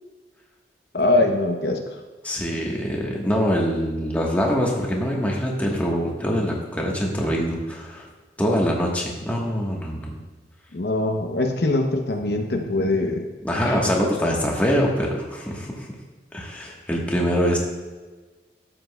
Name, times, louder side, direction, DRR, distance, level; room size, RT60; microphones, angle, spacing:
voice 1, 0.9-2.0 10.7-13.3 13.6-13.8, left 2 dB, 65° left, 4 dB, 0.7 m, -23 dB
voice 2, 2.2-8.1 8.4-10.2 13.4-15.9 16.3-17.6, equal, 10° left, -2 dB, 1.2 m, -24 dB
12.5 x 7.8 x 2.2 m, 1.3 s
head